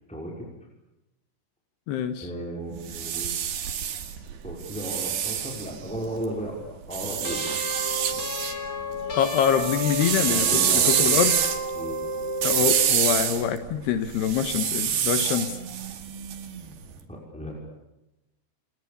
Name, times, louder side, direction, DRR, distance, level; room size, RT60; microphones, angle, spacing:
voice 1, 0.1-0.5 2.2-3.3 4.4-7.4 10.2-11.2 11.7-12.0 17.1-17.6, right 1 dB, ahead, -1 dB, 5.5 m, -35 dB
voice 2, 1.9-2.3 9.1-11.4 12.4-15.6, left 8 dB, 80° left, 9 dB, 3.5 m, -25 dB
sound 1, 2.7-6.2 6.9-8.6 8.9-16.8, right 9 dB, 70° right, 4.1 m, -27 dB
sound 2, 7.2-13.0, left 1 dB, 25° left, 2.5 m, -32 dB
29.5 x 29.0 x 7.0 m, 0.94 s
omnidirectional pair, 4.8 m